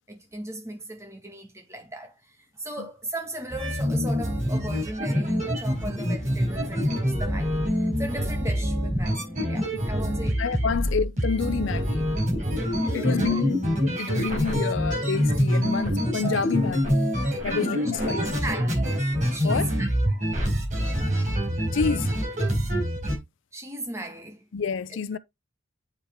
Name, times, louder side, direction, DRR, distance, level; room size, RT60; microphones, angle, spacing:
voice 1, 0.1-10.4 10.7-10.8 12.8-13.5 17.4-17.6 18.0-19.0 19.3-20.2 23.5-24.5 24.9-25.2, right 1 dB, 15° right, 1.9 m, -37 dB
sound 1, 3.5-23.2, equal, 35° right, 4.0 m, -26 dB
voice 2, 10.0-12.1 12.9-17.0 17.4-18.4 19.4-19.7 21.7-22.1 24.5-25.2, left 5 dB, 65° left, 0.5 m, -28 dB
8.1 x 5.7 x 3.6 m
head